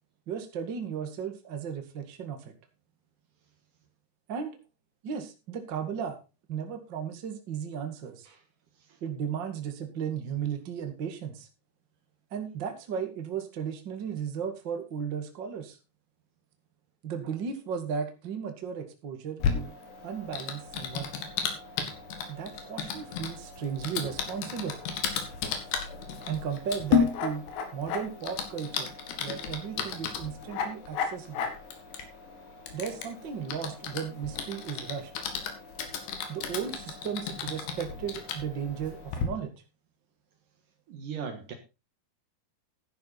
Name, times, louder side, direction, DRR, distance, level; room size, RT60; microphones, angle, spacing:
voice 1, 0.3-2.5 4.3-4.6 5.0-6.2 6.5-8.3 9.0-11.5 12.3-15.8 17.0-19.7 20.0-21.1 22.3-24.8 26.3-27.4 27.7-28.9 29.2-31.5 32.7-35.1 36.3-39.5, right 7 dB, 40° right, 1.9 m, -35 dB
Typing, 19.4-39.2, left 6 dB, 85° left, 4.0 m, -34 dB
voice 2, 40.9-41.5, right 6 dB, 60° right, 2.7 m, -38 dB
12.5 x 10.5 x 4.1 m
omnidirectional pair, 4.7 m